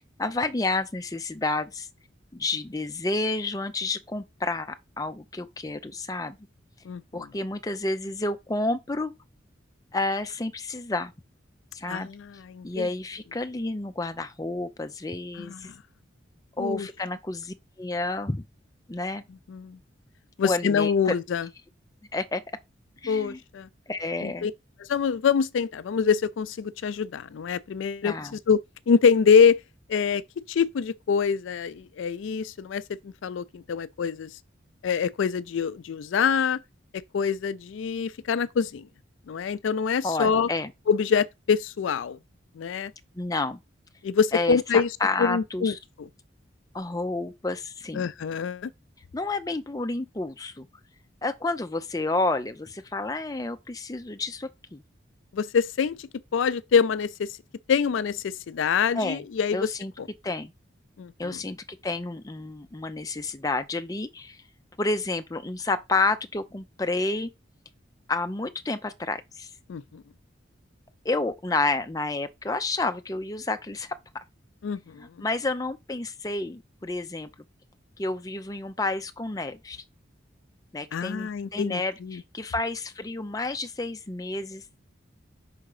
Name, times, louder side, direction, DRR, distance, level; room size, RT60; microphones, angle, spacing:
voice 1, 0.2-1.9 2.3-6.4 7.1-9.1 9.9-11.1 11.7-12.1 12.6-15.7 16.6-18.4 18.9-19.2 20.4-21.1 22.1-22.4 23.0-23.4 23.9-24.5 28.0-28.4 40.0-40.7 43.1-43.6 44.3-45.7 46.7-48.0 49.1-50.7 51.2-54.8 58.9-59.2 59.5-59.9 60.2-60.5 61.2-64.4 64.8-67.3 68.1-69.5 71.0-74.0 75.0-77.3 78.0-79.8 80.7-84.6, left 2 dB, 20° left, 0.5 m, -30 dB
voice 2, 6.9-7.3 11.9-12.9 15.4-15.7 16.6-16.9 19.5-19.8 20.4-21.5 23.1-23.7 24.2-24.5 24.9-28.6 28.9-29.6 29.9-30.2 30.5-34.4 34.8-36.6 37.1-38.9 39.3-40.5 40.9-42.2 42.6-42.9 44.0-44.9 45.2-46.1 47.9-48.7 55.3-57.4 57.7-59.7 60.0-60.1 61.0-61.4 69.7-70.0 74.6-75.1 80.9-82.2, left 6 dB, 80° left, 0.4 m, -25 dB
5.6 x 3.7 x 4.8 m
head